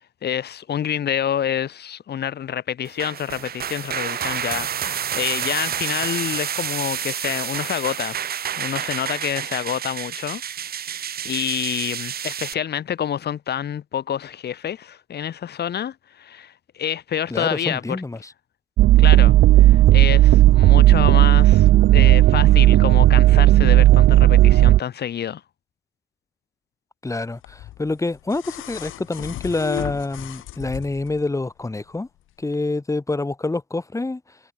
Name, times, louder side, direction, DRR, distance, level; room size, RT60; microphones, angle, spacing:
voice 1, 0.2-8.1 8.6-10.4 11.2-18.0 19.0-25.4, left 9 dB, 55° left, 1.7 m, -28 dB
sound 1, 2.8-12.5, right 9 dB, 50° right, 1.0 m, -29 dB
voice 2, 17.3-18.3 27.0-32.1 32.4-34.4, left 2 dB, 15° left, 2.1 m, -27 dB
sound 2, 18.8-24.8, right 15 dB, 75° right, 0.6 m, -13 dB
sound 3, 27.4-31.2 32.5-32.6, left 14 dB, 85° left, 3.1 m, -35 dB
cardioid pair, 90°, 20 cm